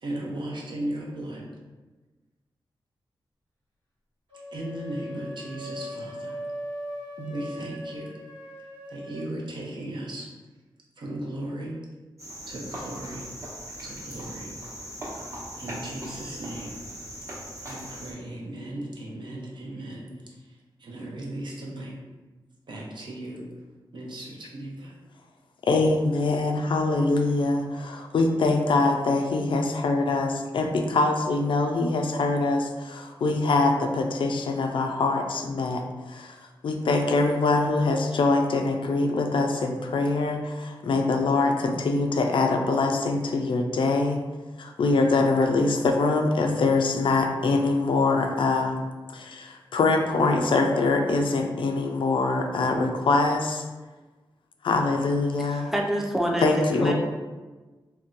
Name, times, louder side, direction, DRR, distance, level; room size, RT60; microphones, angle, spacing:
voice 1, 0.0-1.5 4.5-6.4 7.2-8.1 8.9-10.3 11.0-11.8 12.5-13.3 13.8-14.6 15.6-16.8 17.6-20.1 20.8-21.9 22.7-23.4 23.9-24.9, right 1 dB, 65° right, -2 dB, 0.7 m, -36 dB
sound 1, 4.3-9.3, equal, 85° right, 1.3 m, -39 dB
Cricket, 12.2-18.1, equal, 35° right, 1.0 m, -39 dB
voice 2, 25.6-36.4 36.6-44.2 44.6-48.8 49.1-53.6 54.6-55.7 56.4-56.9, left 3 dB, 75° left, 3 dB, 0.4 m, -24 dB
voice 3, 55.4-56.9, right 1 dB, 5° right, -1 dB, 0.5 m, -27 dB
2.6 x 2.2 x 3.7 m, 1.2 s
cardioid pair, 75°, 9 cm